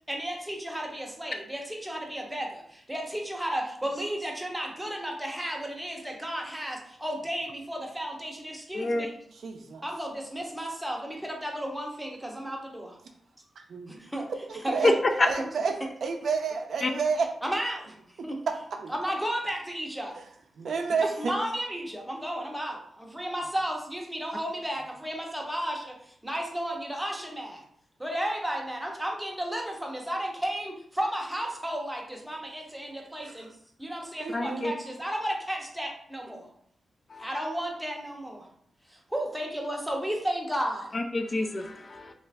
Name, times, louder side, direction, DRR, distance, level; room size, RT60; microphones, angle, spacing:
voice 1, 0.1-9.2 9.8-13.0 13.9-14.3 14.6-15.0 15.4-15.5 17.4-18.0 18.2-18.4 18.9-20.2 21.2-27.6 28.0-33.5 33.8-36.5 37.2-38.5 38.9-40.9, equal, 5° right, 0 dB, 0.7 m, -33 dB
voice 2, 8.7-9.1 14.8-14.9 15.2-15.3 16.8-16.9 34.3-34.7 37.1-37.3 40.9-42.1, left 2 dB, 35° left, 5 dB, 0.3 m, -27 dB
voice 3, 9.3-9.8 13.6-14.0 14.3-14.9 15.3-17.3 18.5-18.9 20.1-20.2 20.6-21.4 33.2-33.4 34.2-34.8, right 5 dB, 70° right, 4 dB, 0.4 m, -30 dB
3.1 x 2.4 x 3.3 m, 0.65 s
wide cardioid pair, 130°, 0 cm